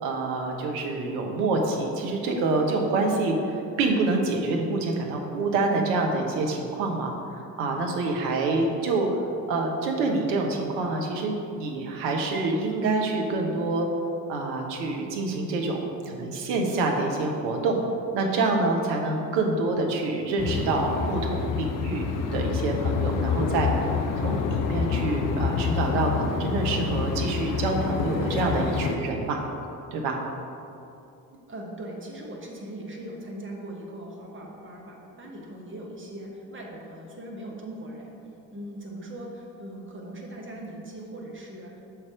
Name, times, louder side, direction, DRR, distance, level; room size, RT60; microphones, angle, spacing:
voice 1, 0.0-9.1 9.5-13.9 14.3-15.8 16.1-17.8 18.1-29.4 29.9-30.2, right 3 dB, 60° right, 2 dB, 1.0 m, -27 dB
sound 1, 20.4-29.0, left 6 dB, 45° left, 0.6 m, -27 dB
voice 2, 31.5-38.2 38.5-41.8, right 1 dB, 25° right, -1 dB, 1.2 m, -40 dB
5.7 x 4.5 x 5.0 m, 2.7 s
figure-of-eight pair, 45°, 46 cm